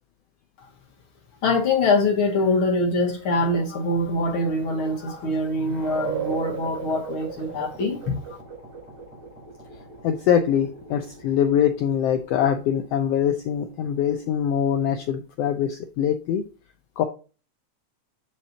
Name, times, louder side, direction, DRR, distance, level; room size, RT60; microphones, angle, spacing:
voice 1, 1.4-8.2, left 2 dB, 55° left, 1.7 m, -23 dB
sound 1, 3.3-14.7, right 5 dB, 35° right, 3.8 m, -39 dB
voice 2, 10.0-16.4 17.0-17.1, left 9 dB, 90° left, 1.3 m, -23 dB
7.3 x 5.4 x 2.8 m
omnidirectional pair, 3.4 m